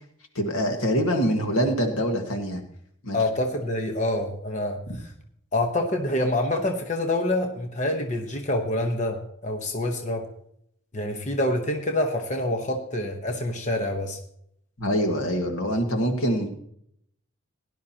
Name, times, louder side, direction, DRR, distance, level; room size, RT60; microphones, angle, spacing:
voice 1, 0.4-2.6 3.0-3.2 4.9-5.0 14.8-16.5, equal, 85° left, 4 dB, 1.8 m, -24 dB
voice 2, 3.1-4.8 5.5-10.2 10.9-14.2, left 1 dB, 35° left, 4 dB, 1.1 m, -26 dB
17.5 x 11.0 x 2.9 m, 0.68 s
head